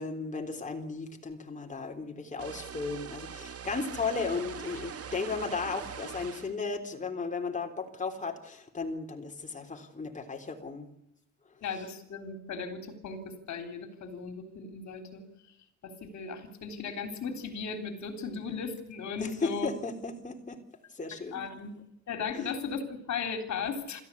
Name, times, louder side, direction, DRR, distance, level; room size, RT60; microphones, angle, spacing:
voice 1, 0.0-10.9 18.3-18.4 19.2-20.6 20.9-21.4 22.3-22.5, left 4 dB, 25° left, 3 dB, 3.5 m, -35 dB
sound 1, 2.4-6.5, right 7 dB, 50° right, 2.1 m, -42 dB
voice 2, 11.6-15.2 15.8-19.7 21.1-21.7 22.1-24.0, left 5 dB, 65° left, 6 dB, 3.6 m, -37 dB
29.5 x 14.0 x 8.4 m, 0.85 s
cardioid pair, 90°, 30 cm